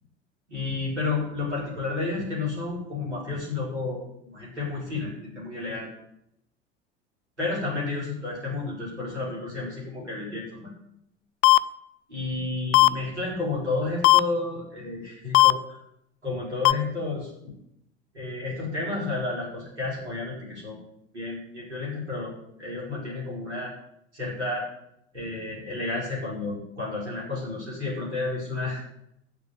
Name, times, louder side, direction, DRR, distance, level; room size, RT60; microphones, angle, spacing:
voice 1, 0.5-4.0 4.3-5.9 7.4-10.8 12.1-15.8 16.2-17.3 18.1-20.8 21.1-22.3 22.6-23.7 24.1-24.6 25.1-28.9, left 3 dB, 85° right, -6 dB, 4.7 m, -31 dB
sound 1, 11.4-11.6 12.7-12.9 14.0-14.2 15.3-15.5 16.6-16.7, left 18 dB, 40° left, 0.5 m, -15 dB
9.7 x 7.1 x 7.9 m, 0.77 s
figure-of-eight pair, 65°, 33 cm